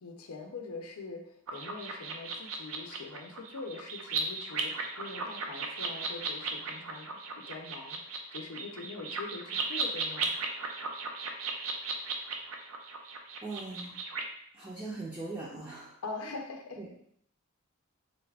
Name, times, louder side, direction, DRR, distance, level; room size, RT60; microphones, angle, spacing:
voice 1, 0.0-7.1 7.4-10.3 16.0-16.9, left 3 dB, 90° left, 4 dB, 0.6 m, -43 dB
sound 1, 1.5-14.2, right 4 dB, 75° right, 0.5 m, -36 dB
voice 2, 13.4-14.0 14.5-16.0 16.8-16.9, right 3 dB, 20° right, -6 dB, 0.5 m, -40 dB
3.9 x 2.3 x 3.3 m, 0.67 s
head